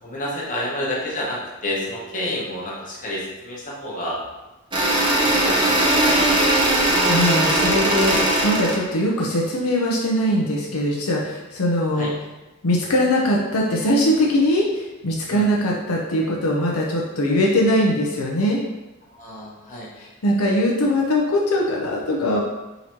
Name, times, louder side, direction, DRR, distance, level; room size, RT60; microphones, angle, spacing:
voice 1, 0.0-4.2 5.2-6.2 11.9-12.1 15.3-15.5 19.1-19.9, left 1 dB, 35° left, -5 dB, 1.2 m, -29 dB
sound 1, 4.7-8.8, right 1 dB, 25° right, 0.8 m, -19 dB
voice 2, 6.8-12.1 12.6-18.6 20.0-22.4, left 1 dB, 80° left, -3 dB, 0.7 m, -21 dB
3.9 x 2.9 x 4.4 m, 1.1 s
head